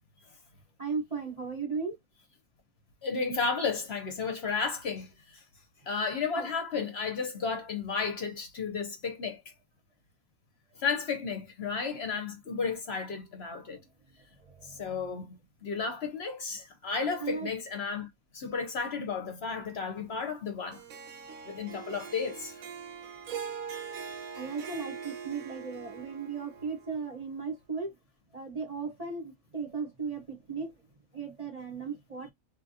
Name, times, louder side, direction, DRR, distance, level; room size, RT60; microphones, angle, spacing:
voice 1, 0.8-2.0 6.4-6.5 14.6-14.9 17.2-17.5 24.4-27.9 28.3-30.7 31.1-32.3, right 5 dB, 30° right, 0.9 m, -36 dB
voice 2, 3.0-5.4 5.9-9.4 10.8-13.8 14.8-18.1 18.3-20.8 21.4-22.5, left 5 dB, 55° left, 0.9 m, -33 dB
Harp, 20.7-27.1, right 6 dB, 85° right, 1.2 m, -42 dB
3.3 x 2.3 x 2.7 m
omnidirectional pair, 1.4 m